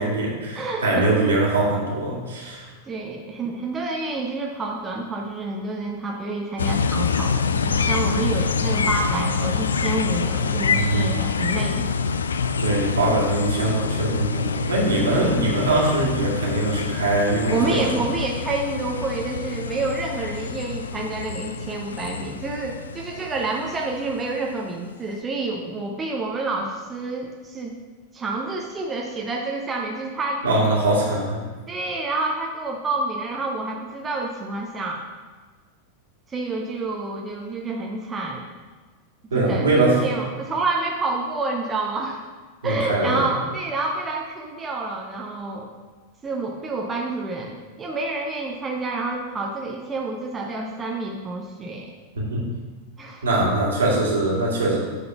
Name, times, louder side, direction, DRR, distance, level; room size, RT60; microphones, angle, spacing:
voice 1, 0.0-2.7 10.7-11.1 12.6-17.9 30.4-31.4 39.3-40.0 42.6-43.3 52.2-52.5 53.2-54.8, right 2 dB, 70° right, -4 dB, 2.2 m, -22 dB
voice 2, 0.5-1.1 2.9-11.9 17.5-27.8 28.1-30.4 31.7-35.0 36.3-38.5 39.3-42.2 42.6-45.7 46.2-51.9 53.0-53.3, right 3 dB, 20° right, 0 dB, 0.8 m, -28 dB
sound 1, 6.6-24.5, left 5 dB, 70° left, 0.3 m, -26 dB
8.6 x 4.1 x 5.6 m, 1.4 s
figure-of-eight pair, 90°, 0 cm